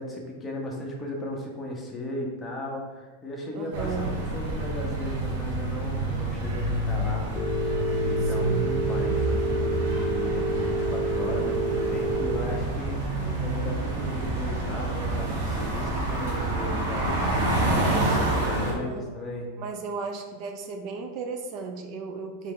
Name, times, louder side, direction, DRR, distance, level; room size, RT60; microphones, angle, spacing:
voice 1, 0.0-7.3 7.5-17.5 17.9-19.5, left 1 dB, 15° left, -2 dB, 0.9 m, -36 dB
voice 2, 3.5-4.1 8.3-8.6 13.2-13.4 18.5-19.2 19.6-22.5, right 4 dB, 45° right, 5 dB, 0.4 m, -36 dB
sound 1, 3.7-18.7, right 2 dB, 75° right, 1.1 m, -28 dB
Telephone, 7.4-12.4, right 2 dB, 40° left, 0.4 m, -28 dB
3.8 x 3.2 x 3.7 m, 1.4 s
supercardioid pair, 130°, 0 cm